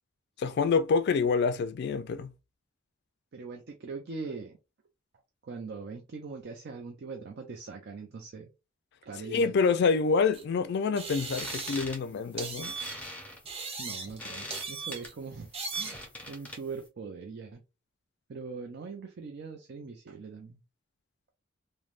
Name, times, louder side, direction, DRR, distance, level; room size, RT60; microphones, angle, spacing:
voice 1, 0.4-2.3 9.3-12.7, left 5 dB, 55° left, 0.3 m, -27 dB
voice 2, 3.3-4.6 5.4-8.5 9.0-9.6 13.8-15.5 15.8-17.6 18.3-20.6, right 4 dB, 55° right, 0.4 m, -41 dB
sound 1, 10.3-10.4 11.0-12.0 12.4-13.1 13.5-14.2 14.5-15.1 15.5-16.1, right 4 dB, 30° right, 0.7 m, -38 dB
sound 2, 11.2-16.9, left 1 dB, 5° left, 0.6 m, -43 dB
3.2 x 2.1 x 2.4 m
head